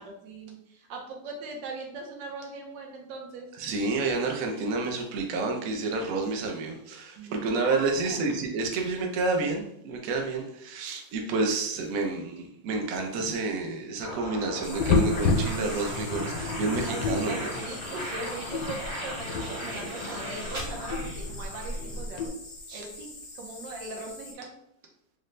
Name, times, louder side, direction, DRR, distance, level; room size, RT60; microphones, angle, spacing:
voice 1, 0.0-3.5 7.2-8.3 16.8-22.3 22.7-24.5, right 3 dB, 90° right, 0 dB, 1.4 m, -40 dB
voice 2, 3.6-17.5 22.7-22.8, right 3 dB, 65° right, 2 dB, 0.8 m, -29 dB
sound 1, 14.0-21.8, equal, 40° right, 0.6 m, -38 dB
sound 2, 14.6-24.3, left 1 dB, 55° left, 0.5 m, -41 dB
sound 3, 14.8-22.3, left 4 dB, 75° left, 1.1 m, -31 dB
3.9 x 2.1 x 3.1 m, 0.75 s
omnidirectional pair, 2.0 m